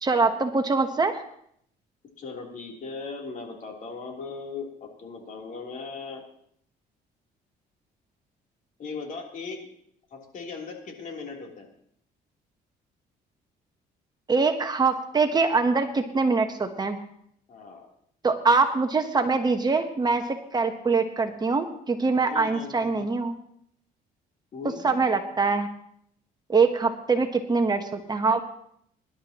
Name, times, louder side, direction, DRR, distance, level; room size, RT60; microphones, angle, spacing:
voice 1, 0.0-1.2 14.3-17.0 18.2-23.4 24.8-25.7 26.5-28.4, right 4 dB, 25° right, 6 dB, 1.1 m, -23 dB
voice 2, 2.2-6.2 8.8-9.6 10.1-11.7 17.5-17.9 22.2-23.1 24.5-25.1, left 4 dB, 50° left, 0 dB, 3.4 m, -38 dB
23.5 x 11.5 x 3.0 m, 0.68 s
cardioid pair, 110°, 17 cm